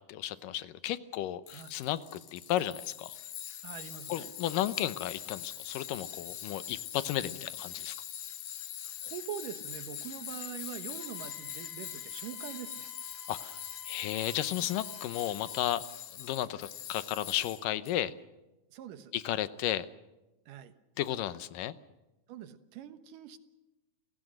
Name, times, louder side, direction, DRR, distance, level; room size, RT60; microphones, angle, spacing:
voice 1, 0.1-2.0 2.3-3.2 4.1-7.9 13.3-13.6 13.9-15.8 16.2-18.1 19.1-19.9 21.0-21.7, left 12 dB, 90° left, 14 dB, 2.6 m, -33 dB
Tools, 1.5-17.9, left 10 dB, 60° left, 2.4 m, -43 dB
voice 2, 3.6-4.3 8.8-12.9 18.7-19.1 20.5-20.7 22.3-23.4, right 10 dB, 80° right, 10 dB, 2.8 m, -44 dB
Wind instrument woodwind instrument, 11.0-15.6, right 1 dB, 30° left, 8.6 m, -55 dB
29.5 x 17.0 x 6.5 m, 1.0 s
omnidirectional pair, 3.7 m